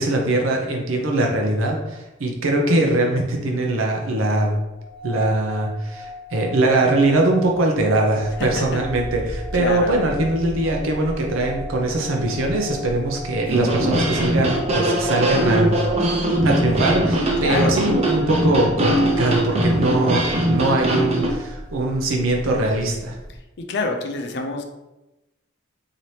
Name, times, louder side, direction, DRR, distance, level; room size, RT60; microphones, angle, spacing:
voice 1, 0.0-4.6 5.0-15.8 16.4-23.2, right 2 dB, 90° right, 0 dB, 0.6 m, -21 dB
sound 1, 4.7-21.9, left 1 dB, 55° right, 1.0 m, -40 dB
sound 2, 8.2-23.4, equal, 10° left, 0.7 m, -37 dB
voice 2, 8.4-8.8 9.5-9.9 17.4-17.8 23.6-24.6, left 3 dB, 60° left, 4 dB, 0.5 m, -26 dB
sound 3, 13.5-21.3, right 1 dB, 30° right, 0.6 m, -21 dB
4.1 x 2.9 x 3.2 m, 1.0 s
head